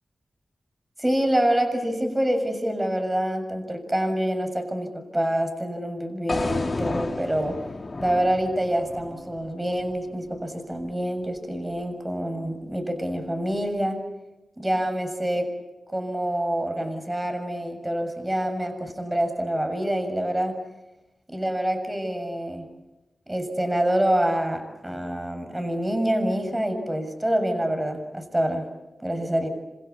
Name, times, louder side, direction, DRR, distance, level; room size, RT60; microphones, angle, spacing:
voice 1, 1.0-7.6 8.0-14.0 14.6-15.5 15.9-20.6 21.3-22.7 23.3-28.7 29.0-29.5, right 1 dB, 15° right, 6 dB, 6.8 m, -26 dB
sound 1, 6.3-10.4, left 3 dB, 50° left, 2.1 m, -32 dB
27.0 x 26.5 x 8.3 m, 1.0 s
cardioid pair, 45°, 0 cm